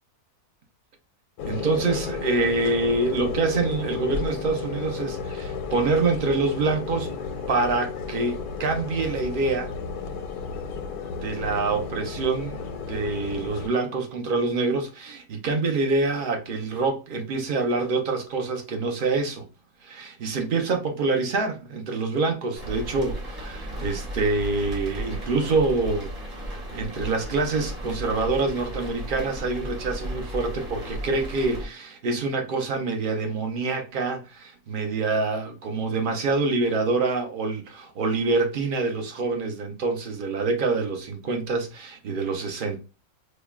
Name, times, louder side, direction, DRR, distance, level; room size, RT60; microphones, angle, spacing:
sound 1, 1.4-13.7, left 5 dB, 90° left, 1.2 m, -33 dB
voice 1, 1.4-7.1 7.5-9.7 11.1-19.4 19.8-26.1 26.4-42.8, right 3 dB, 50° right, 0.7 m, -26 dB
sound 2, 22.5-31.7, equal, 25° right, 1.5 m, -35 dB
5.0 x 2.2 x 2.3 m
omnidirectional pair, 1.7 m